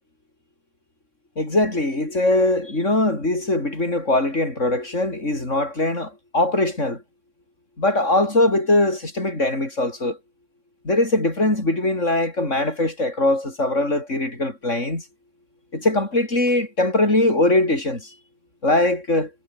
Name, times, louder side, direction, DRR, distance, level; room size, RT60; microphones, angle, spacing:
voice 1, 1.4-7.0 7.8-10.2 10.8-15.0 15.7-18.1 18.6-19.3, left 2 dB, 75° left, 6.6 m, -21 dB
omnidirectional pair, 1.3 m